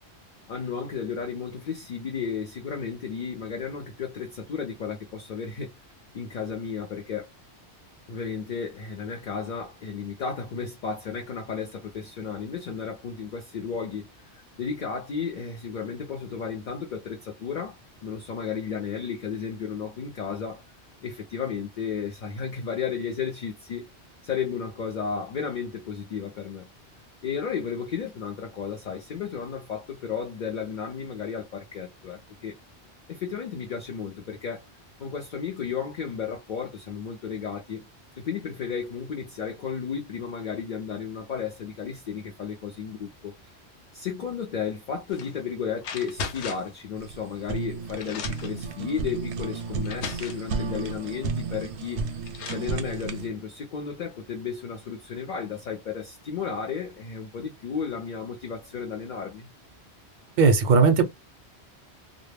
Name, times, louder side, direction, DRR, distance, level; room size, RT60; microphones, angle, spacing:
voice 1, 0.5-5.7 6.1-7.3 8.1-14.1 14.3-20.6 21.0-23.9 24.2-26.7 27.2-32.6 33.1-34.6 35.0-37.8 38.2-43.3 43.9-52.1 52.4-59.5, left 6 dB, 55° left, 0.6 m, -33 dB
sound 1, 45.1-45.3 45.8-46.8 47.6-47.7 48.0-48.6 49.4-49.5 49.9-50.5 51.8-51.9 52.3-52.7, left 5 dB, 90° left, 0.9 m, -36 dB
Fire, 47.0-53.3, right 4 dB, 85° right, 0.9 m, -33 dB
voice 2, 60.4-61.0, right 5 dB, 55° right, 0.6 m, -17 dB
2.1 x 2.0 x 3.2 m
omnidirectional pair, 1.1 m